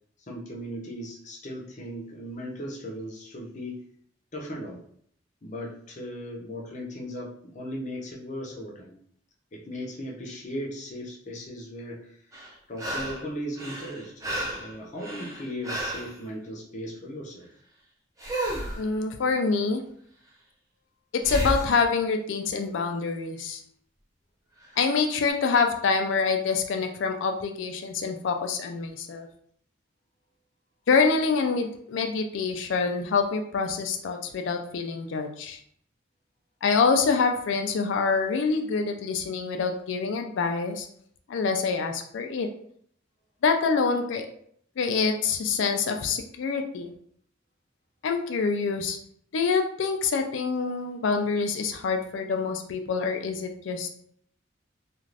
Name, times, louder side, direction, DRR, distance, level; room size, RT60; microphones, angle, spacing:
voice 1, 0.3-3.8 4.3-4.8 5.4-8.9 9.5-12.2 12.7-14.1 14.5-17.5, equal, 40° left, -1 dB, 0.6 m, -37 dB
sound 1, 12.3-13.3 13.6-16.1 18.2-18.8 21.2-21.7 24.6-24.7, right 1 dB, 20° right, 0.6 m, -32 dB
voice 2, 18.7-19.8 21.1-23.6 24.8-29.3 30.9-35.6 36.6-40.9 41.3-42.5 43.4-44.3 44.8-46.9 48.0-49.0 49.3-53.9, left 5 dB, 80° left, 5 dB, 0.4 m, -26 dB
2.5 x 2.4 x 3.2 m, 0.64 s
head